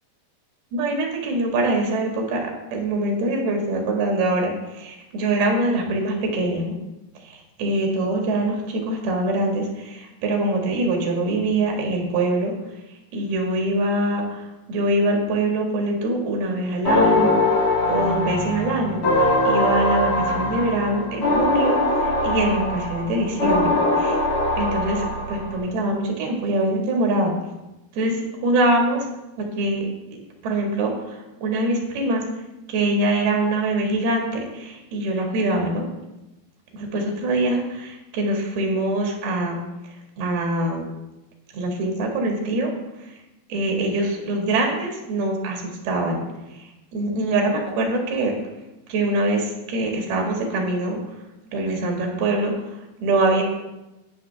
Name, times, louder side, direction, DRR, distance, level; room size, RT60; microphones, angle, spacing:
voice 1, 0.7-6.7 7.6-12.5 13.1-24.2 24.6-27.3 27.9-29.1 29.4-29.9 30.4-32.3 32.7-35.9 36.7-39.6 40.2-40.8 41.5-42.7 43.0-43.1 43.5-46.2 46.5-48.4 48.9-51.0 51.5-53.4, right 2 dB, 90° right, 1 dB, 3.8 m, -24 dB
sound 1, 16.8-25.6, left 1 dB, 40° left, 3.0 m, -22 dB
18.5 x 6.4 x 3.4 m, 0.98 s
omnidirectional pair, 4.4 m